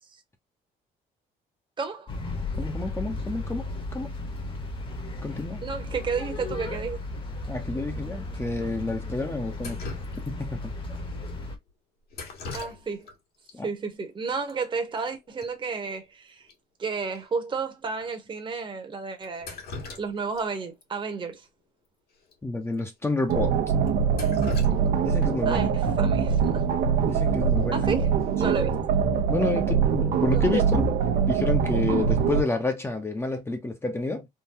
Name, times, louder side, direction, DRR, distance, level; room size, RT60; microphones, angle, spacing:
voice 1, 1.8-2.1 5.6-7.0 12.5-13.1 13.6-16.5 16.8-19.6 20.0-21.5 25.5-26.7 27.7-28.1 28.4-28.8 30.3-30.6, right 5 dB, 30° right, 1.0 m, -32 dB
sound 1, 2.1-11.6, left 2 dB, 30° left, 1.1 m, -35 dB
voice 2, 2.6-4.1 5.2-5.6 7.5-9.9 10.3-10.7 13.5-13.7 22.4-23.6 24.9-25.8 27.1-27.9 28.4-28.6 29.3-30.6 31.2-34.3, left 3 dB, 15° left, 0.7 m, -29 dB
Drip, 9.6-10.6 12.1-13.2 13.5-13.6 14.5-14.6 14.8-15.1 15.4-15.5 15.9-16.0 16.5-16.6 17.1-17.2 17.9-18.1 19.2-20.4 20.8-20.9 22.2-22.3 22.7-22.8 23.3-23.4 23.9-25.5 27.5-27.8 28.2-28.6, left 3 dB, 65° left, 1.8 m, -40 dB
sound 2, 23.3-32.4, right 6 dB, 85° right, 0.9 m, -23 dB
3.8 x 2.2 x 2.7 m
cardioid pair, 110°, 17 cm